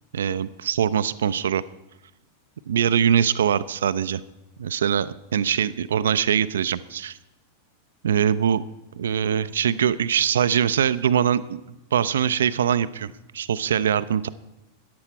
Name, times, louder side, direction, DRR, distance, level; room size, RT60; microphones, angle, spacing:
voice 1, 0.1-1.6 2.7-4.2 4.6-7.2 8.0-8.6 8.9-11.6 11.9-14.3, right 8 dB, 65° right, 16 dB, 0.4 m, -22 dB
13.5 x 10.5 x 4.6 m, 0.98 s
figure-of-eight pair, 90°, 0 cm